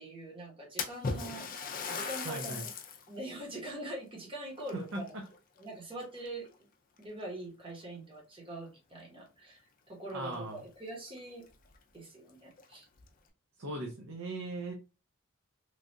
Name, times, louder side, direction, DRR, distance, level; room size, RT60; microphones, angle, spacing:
voice 1, 0.0-1.5 1.9-2.7 3.1-5.2 5.6-6.5 7.0-9.6 9.9-11.4 11.9-12.9, right 1 dB, 25° right, -1 dB, 1.0 m, -43 dB
Splash splatter, 0.8-3.1 3.6-3.7 4.6-5.6 6.0-6.4 7.2-7.3 7.8-7.9 10.1-10.2 10.5-10.6 11.2-11.3 11.7-11.8 12.5-13.1, left 4 dB, 40° left, 0.4 m, -38 dB
voice 2, 2.2-2.7 4.9-5.2 10.1-10.6 13.6-14.7, right 2 dB, 70° right, 1 dB, 0.6 m, -38 dB
3.2 x 2.3 x 2.6 m, 0.30 s
head